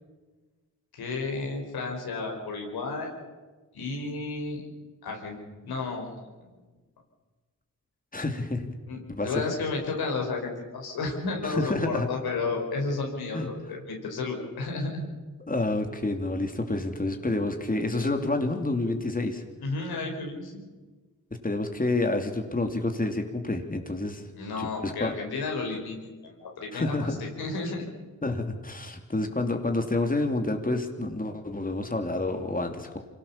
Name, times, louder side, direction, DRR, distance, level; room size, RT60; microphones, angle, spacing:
voice 1, 0.9-3.1 3.7-4.6 5.0-6.3 8.9-15.1 19.6-20.6 24.4-27.9, left 3 dB, 85° left, 0 dB, 5.1 m, -32 dB
voice 2, 8.1-8.7 9.1-9.4 11.4-12.1 13.3-13.5 15.5-19.4 21.4-24.2 24.6-25.1 26.7-27.2 28.2-33.0, left 2 dB, 20° left, 5 dB, 3.0 m, -28 dB
25.0 x 18.0 x 7.3 m, 1.3 s
supercardioid pair, 40°, 37 cm